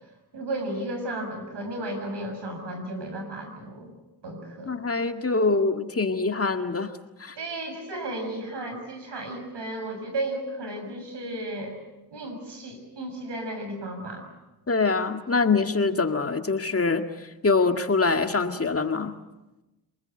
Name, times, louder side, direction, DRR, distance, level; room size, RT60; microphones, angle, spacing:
voice 1, 0.3-3.9 4.2-4.8 7.4-11.8 12.1-14.3, right 1 dB, 80° right, 5 dB, 6.8 m, -34 dB
voice 2, 4.7-6.9 7.2-7.4 14.7-19.1, left 4 dB, 35° left, 6 dB, 2.0 m, -24 dB
28.0 x 20.5 x 7.9 m, 1.0 s
cardioid pair, 60°, 41 cm